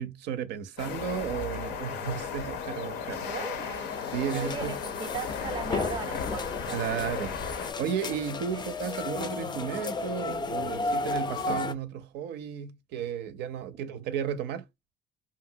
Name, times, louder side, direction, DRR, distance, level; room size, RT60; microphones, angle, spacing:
voice 1, 0.0-3.3 4.1-4.8 6.7-7.3 7.8-14.7, right 8 dB, 85° right, 0.4 m, -33 dB
sound 1, 0.8-7.7, left 6 dB, 80° left, 0.6 m, -35 dB
voice 2, 3.2-6.8 7.2-7.7 8.5-8.6 13.7-13.8, right 6 dB, 30° right, 0.5 m, -39 dB
sound 2, 3.7-11.7, left 3 dB, 25° left, 0.3 m, -34 dB
2.9 x 2.6 x 2.6 m
cardioid pair, 110°, 17 cm